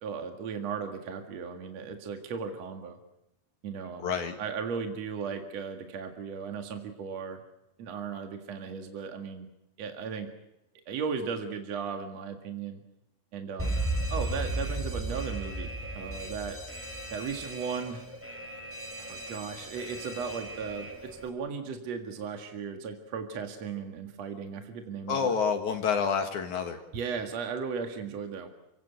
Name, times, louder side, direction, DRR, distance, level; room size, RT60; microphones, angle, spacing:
voice 1, 0.0-3.0 3.6-4.1 4.4-7.4 7.8-9.5 9.8-10.3 10.9-12.8 13.3-13.8 14.1-16.6 17.1-18.1 19.0-25.3 26.9-28.5, right 6 dB, 60° right, 5 dB, 2.9 m, -36 dB
voice 2, 4.0-4.3 25.1-26.8, left 6 dB, 70° left, 5 dB, 3.1 m, -28 dB
Alarm, 13.6-21.3, right 1 dB, 5° right, 3.0 m, -35 dB
29.5 x 17.5 x 8.1 m, 0.91 s
omnidirectional pair, 3.6 m